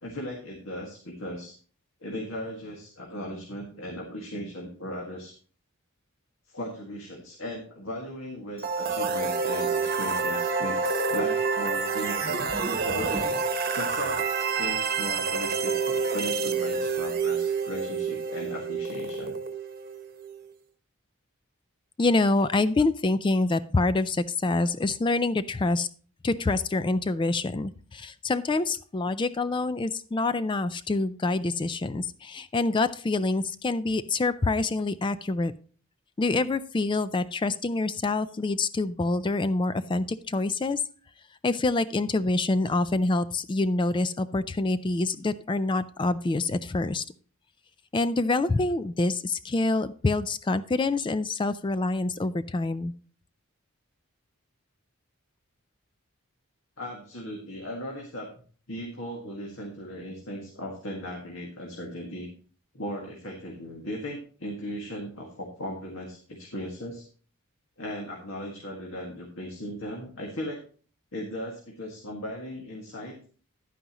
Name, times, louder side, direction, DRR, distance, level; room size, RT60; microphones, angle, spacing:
voice 1, 0.0-1.6 2.0-5.3 6.5-12.5 12.8-13.3 13.7-19.4 56.8-58.3 58.7-62.3 62.7-67.0 67.8-70.6 71.1-73.2, equal, 65° left, -1 dB, 1.8 m, -37 dB
sound 1, 8.6-20.4, right 5 dB, 40° right, 1.1 m, -28 dB
voice 2, 22.0-25.9 26.2-35.5 36.2-40.8 41.4-47.0 47.9-52.9, left 2 dB, 20° left, 14 dB, 0.3 m, -26 dB
11.0 x 9.3 x 2.9 m, 0.42 s
head